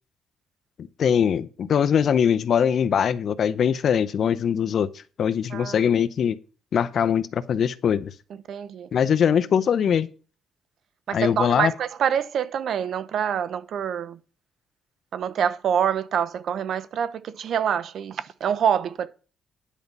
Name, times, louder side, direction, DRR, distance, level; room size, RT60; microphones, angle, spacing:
voice 1, 1.0-4.9 5.2-6.4 6.7-8.1 8.9-10.1 11.1-11.7, left 8 dB, 60° left, 0.7 m, -22 dB
voice 2, 8.5-8.9 11.1-14.2 15.1-19.1, right 8 dB, 65° right, 0.8 m, -26 dB
10.0 x 5.4 x 7.2 m
cardioid pair, 100°, 0 cm